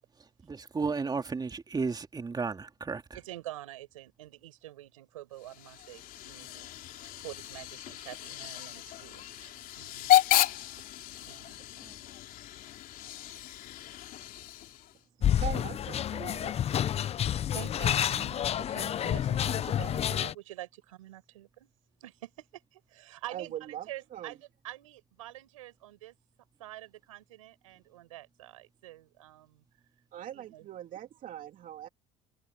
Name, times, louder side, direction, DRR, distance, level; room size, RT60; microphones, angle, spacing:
voice 1, 0.4-3.0 11.8-11.9, right 4 dB, 25° right, 3.3 m, -33 dB
voice 2, 3.1-6.7 7.2-10.1 11.3-11.6 15.2-15.6 17.3-21.7 22.0-26.1 26.6-29.6 30.3-30.7, right 15 dB, 90° right, 5.2 m, -47 dB
Hiss / Train / Alarm, 5.4-15.0, left 13 dB, 60° left, 3.6 m, -32 dB
sound 1, 15.2-20.3, left 10 dB, 40° left, 0.5 m, -29 dB
voice 3, 15.4-16.6 23.3-24.3 30.1-31.9, right 11 dB, 55° right, 2.5 m, -41 dB
hypercardioid pair, 75°, 17 cm